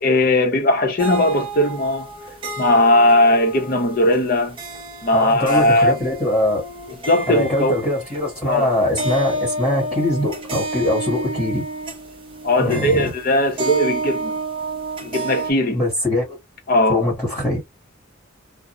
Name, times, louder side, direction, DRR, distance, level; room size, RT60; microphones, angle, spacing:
voice 1, 0.0-2.1 2.6-4.6 5.0-6.0 7.1-7.7 8.5-8.7 12.4-14.4 15.0-15.8 16.7-17.0, left 1 dB, 45° left, 0.7 m, -18 dB
sound 1, 1.0-15.5, right 2 dB, 25° right, 0.6 m, -30 dB
voice 2, 5.1-6.6 7.3-11.6 12.6-13.1 15.7-16.4 16.9-17.6, left 1 dB, 10° left, 1.4 m, -22 dB
2.4 x 2.0 x 2.9 m
head